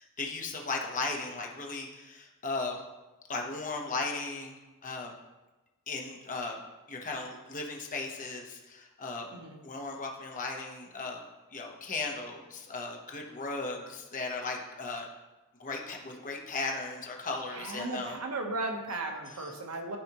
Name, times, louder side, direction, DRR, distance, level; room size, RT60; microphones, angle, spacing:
voice 1, 0.2-2.8 3.3-4.5 4.8-5.1 5.9-6.6 6.9-9.3 9.6-11.2 11.5-15.1 15.6-18.2 19.4-19.5, left 3 dB, 35° left, 0 dB, 1.0 m, -36 dB
voice 2, 17.5-20.0, right 2 dB, 80° right, 3 dB, 1.0 m, -36 dB
12.5 x 4.3 x 3.0 m, 1.1 s
head